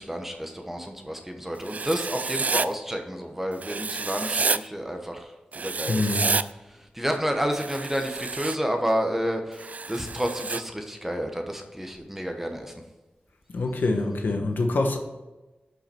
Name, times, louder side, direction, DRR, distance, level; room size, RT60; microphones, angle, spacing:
voice 1, 0.0-6.3 6.6-12.7, equal, 10° right, 4 dB, 1.1 m, -30 dB
Writing, 1.6-2.7 3.6-4.6 5.5-6.4 7.5-8.6 9.6-10.6, right 4 dB, 50° right, 0.3 m, -29 dB
voice 2, 5.9-6.3 13.5-15.0, left 2 dB, 80° left, 4 dB, 1.1 m, -25 dB
11.5 x 5.7 x 4.4 m, 1.1 s
wide cardioid pair, 105°, 3 cm